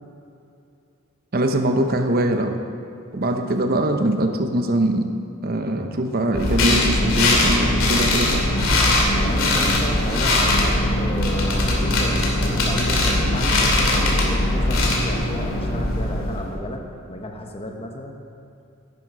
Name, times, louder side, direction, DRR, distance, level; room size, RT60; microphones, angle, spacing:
voice 1, 1.3-2.6 3.1-5.1 5.4-8.4, right 1 dB, 45° right, 5 dB, 0.8 m, -22 dB
sound 1, 6.3-16.5, left 1 dB, 75° left, 2.6 m, -20 dB
voice 2, 9.2-16.8 17.1-18.2, left 1 dB, 30° left, 2 dB, 1.2 m, -32 dB
11.0 x 10.5 x 5.6 m, 2.7 s
head